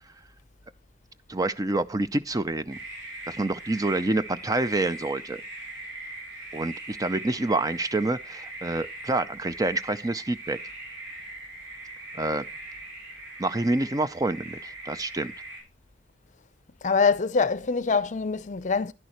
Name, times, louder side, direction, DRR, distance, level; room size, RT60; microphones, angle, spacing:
voice 1, 1.3-2.8 3.3-5.4 6.5-10.6 12.1-12.4 13.4-15.3, right 2 dB, 20° right, 0.5 m, -27 dB
sound 1, 2.7-15.6, right 2 dB, 65° right, 6.3 m, -41 dB
voice 2, 16.8-18.9, left 5 dB, 40° left, 0.6 m, -24 dB
11.0 x 10.5 x 3.0 m
head